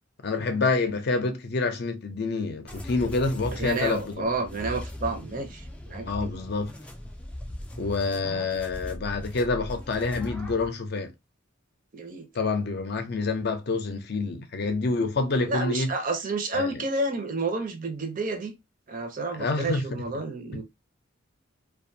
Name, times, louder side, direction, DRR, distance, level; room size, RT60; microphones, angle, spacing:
voice 1, 0.2-4.3 6.1-6.7 7.8-11.1 12.3-15.9 16.5-16.7 19.4-19.9 20.5-20.6, left 3 dB, 55° left, 0.5 m, -27 dB
sound 1, 2.7-10.7, left 1 dB, 5° left, 0.3 m, -39 dB
voice 2, 3.5-6.3 11.9-12.3 15.4-18.5 18.9-20.6, right 2 dB, 45° right, 0.6 m, -30 dB
2.5 x 2.3 x 2.6 m
head